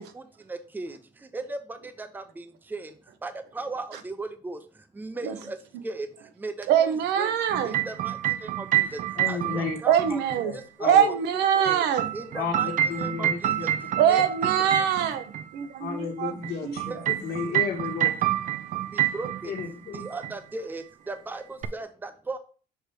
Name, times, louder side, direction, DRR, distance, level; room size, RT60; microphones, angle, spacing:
voice 1, 0.0-7.4 7.6-10.2 10.5-11.2 11.5-11.8 12.1-13.7 14.1-14.2 14.8-14.9 16.9-17.0 18.9-19.5 19.9-22.4, right 3 dB, 10° right, 0.6 m, -37 dB
voice 2, 6.7-7.8 9.9-10.5 10.8-12.0 14.0-15.2 15.5-16.3 16.6-16.8, right 9 dB, 85° right, 0.9 m, -23 dB
sad piano, 7.5-10.4 11.7-15.4 16.4-19.7 19.9-20.3 21.6-21.7, right 12 dB, 50° right, 0.5 m, -28 dB
voice 3, 9.1-9.8 10.4-11.1 12.3-13.6 15.8-18.1 19.5-20.1, left 5 dB, 65° left, 1.4 m, -32 dB
6.7 x 3.1 x 4.4 m
cardioid pair, 110°, 17 cm